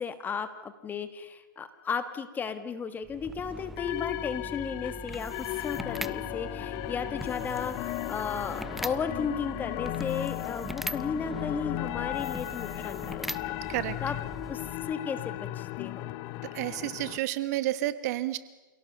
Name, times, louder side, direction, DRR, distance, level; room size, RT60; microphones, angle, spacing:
voice 1, 0.0-13.6 14.0-14.2 14.5-16.1, left 6 dB, 15° left, 11 dB, 1.4 m, -35 dB
sound 1, 3.0-15.0, right 1 dB, ahead, 0.6 m, -41 dB
sound 2, 3.8-17.2, left 17 dB, 35° left, 0.8 m, -36 dB
voice 2, 16.4-18.4, right 15 dB, 50° right, 14 dB, 1.3 m, -30 dB
27.5 x 17.5 x 6.6 m, 1.2 s
hypercardioid pair, 130°, 11 cm